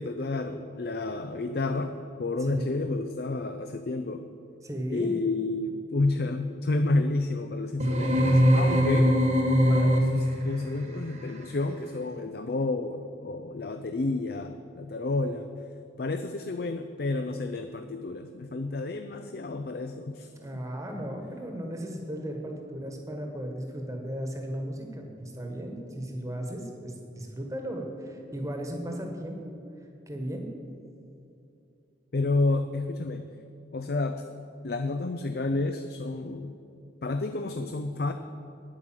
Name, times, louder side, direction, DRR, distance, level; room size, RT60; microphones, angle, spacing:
voice 1, 0.0-4.3 4.9-9.2 9.7-15.5 16.0-20.6 32.1-33.3 33.7-34.3 34.6-36.6 37.0-38.1, left 2 dB, 55° left, 8 dB, 0.5 m, -30 dB
voice 2, 4.6-5.1 20.3-29.5 30.1-30.5, right 1 dB, 15° right, 3 dB, 1.4 m, -36 dB
sound 1, 7.8-10.4, equal, 40° right, 1.5 m, -21 dB
9.7 x 8.6 x 7.5 m, 2.7 s
head